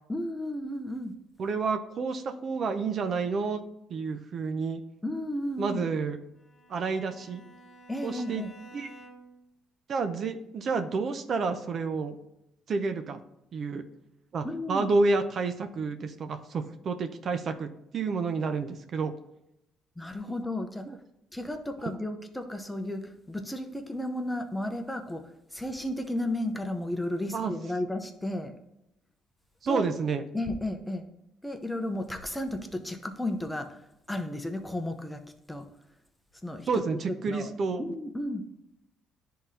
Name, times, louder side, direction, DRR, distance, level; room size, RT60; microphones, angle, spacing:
voice 1, 0.1-1.1 5.0-5.9 7.9-8.5 14.4-14.9 20.0-20.8 21.3-25.2 25.5-28.5 29.7-29.9 30.3-31.0 31.4-33.7 34.1-35.2 35.5-35.7 36.4-36.8 37.2-37.5 37.8-38.4, left 1 dB, 10° left, 6 dB, 0.8 m, -33 dB
voice 2, 1.4-3.6 3.9-4.8 5.6-6.2 6.7-7.4 8.0-8.4 8.7-8.9 9.9-12.2 12.7-13.2 13.5-13.8 14.3-19.1 20.9-21.0 27.3-27.5 29.6-30.2 36.7-37.9, right 4 dB, 55° right, 8 dB, 0.6 m, -29 dB
Bowed string instrument, 6.3-9.5, right 1 dB, 30° left, 2.1 m, -52 dB
10.5 x 3.7 x 2.8 m, 0.84 s
supercardioid pair, 75°, 0 cm